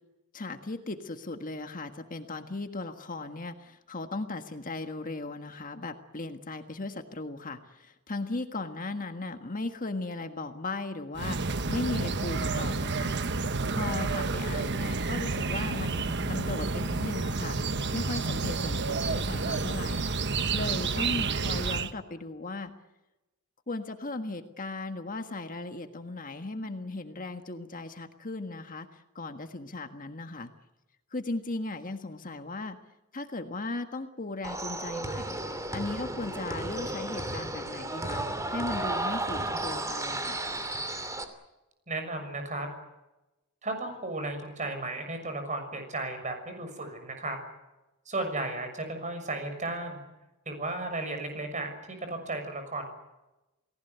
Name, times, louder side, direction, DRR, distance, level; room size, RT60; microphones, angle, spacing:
voice 1, 0.3-13.1 13.7-17.6 17.9-20.0 20.5-22.7 23.7-30.5 31.1-32.8 33.1-35.4 35.7-38.2 38.5-40.4, left 2 dB, 40° left, 7 dB, 1.6 m, -37 dB
sound 1, 11.2-21.9, right 3 dB, 55° right, 1.2 m, -30 dB
sound 2, 34.4-41.2, right 2 dB, 15° right, 2.8 m, -33 dB
voice 2, 41.9-42.7 43.6-47.4 48.1-50.0 50.5-52.9, right 2 dB, 35° right, 6 dB, 6.5 m, -34 dB
29.5 x 19.0 x 8.2 m, 1.0 s
head